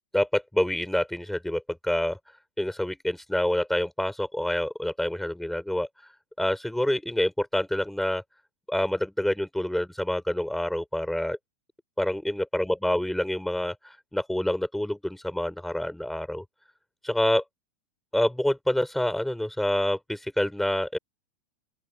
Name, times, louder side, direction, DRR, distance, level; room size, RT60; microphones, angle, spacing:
voice 1, 0.1-2.2 2.6-6.1 6.4-8.2 8.7-11.4 12.0-16.4 17.0-17.4 18.1-21.0, left 1 dB, 5° left, 6.5 m, -27 dB
open air
hypercardioid pair, 100°, 8 cm